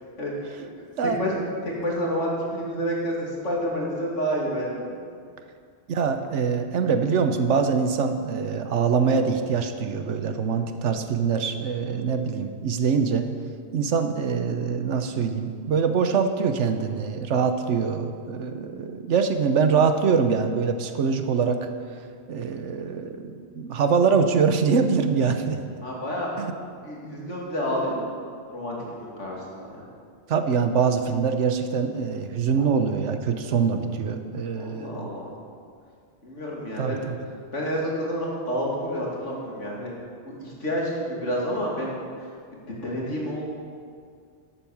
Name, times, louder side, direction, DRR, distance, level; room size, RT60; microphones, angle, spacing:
voice 1, 0.2-0.5 1.0-5.1 25.8-26.3 26.8-29.8 34.5-35.3 36.2-37.0 37.5-40.0 40.3-42.3 42.8-43.5, equal, 90° left, -3 dB, 3.0 m, -29 dB
voice 2, 5.9-13.3 13.7-21.7 22.3-25.6 26.4-26.5 30.3-35.1 36.8-37.2, right 6 dB, 80° right, 8 dB, 1.2 m, -24 dB
12.0 x 8.5 x 7.2 m, 2.2 s
omnidirectional pair, 1.2 m